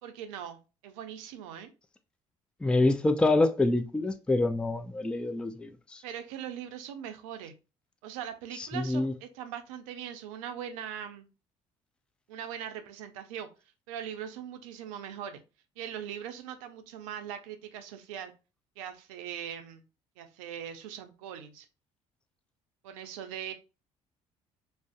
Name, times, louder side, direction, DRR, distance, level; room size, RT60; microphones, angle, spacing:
voice 1, 0.0-1.7 6.0-7.5 8.0-11.3 12.3-13.5 13.9-15.4 15.8-18.3 18.8-19.8 20.2-21.7 22.8-23.5, right 9 dB, 80° right, 0.4 m, -40 dB
voice 2, 2.6-6.0 8.6-9.1, left 2 dB, 5° left, 0.3 m, -26 dB
2.5 x 2.0 x 2.4 m
hypercardioid pair, 55°, 17 cm